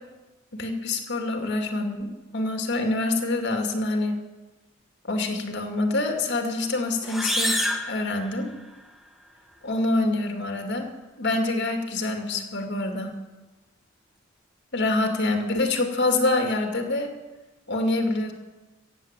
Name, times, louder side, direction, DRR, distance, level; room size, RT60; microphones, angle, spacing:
voice 1, 0.5-4.2 5.1-7.6 7.9-8.5 9.6-10.9 11.2-13.1 14.7-17.1 17.7-18.3, left 2 dB, 55° left, 4 dB, 2.3 m, -26 dB
sound 1, 7.0-8.9, equal, ahead, 1.3 m, -28 dB
15.5 x 8.0 x 8.9 m, 1.1 s
head